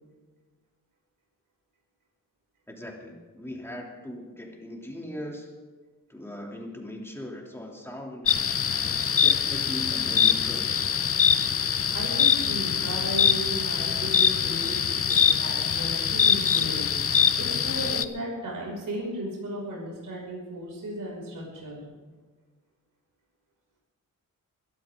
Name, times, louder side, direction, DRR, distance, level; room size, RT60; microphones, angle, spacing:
voice 1, 2.7-5.5 6.1-8.3 8.8-10.7, left 1 dB, 5° left, -1 dB, 3.0 m, -39 dB
sound 1, 8.3-18.0, left 7 dB, 45° left, 0.7 m, -23 dB
voice 2, 11.9-21.8, equal, 70° right, -3 dB, 6.0 m, -35 dB
22.0 x 13.0 x 3.8 m, 1.4 s
wide cardioid pair, 115°, 33 cm